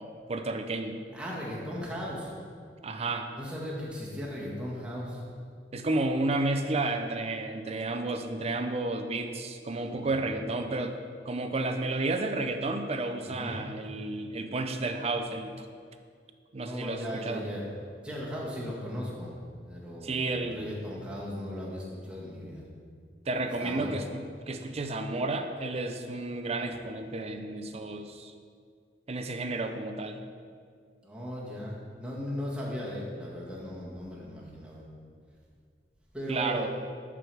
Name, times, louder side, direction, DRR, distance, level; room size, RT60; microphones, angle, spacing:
voice 1, 0.0-1.0 2.8-3.3 5.7-11.0 11.3-15.7 16.5-17.4 20.0-20.7 23.3-28.3 29.1-30.2 36.3-36.7, right 2 dB, 35° right, 7 dB, 0.6 m, -32 dB
voice 2, 1.1-2.3 3.3-5.2 9.9-10.2 13.2-13.6 16.6-17.7 18.0-19.3 19.6-22.6 23.6-23.9 31.0-34.8 36.1-36.7, equal, 5° right, -6 dB, 1.7 m, -37 dB
11.0 x 4.9 x 4.7 m, 2.1 s
head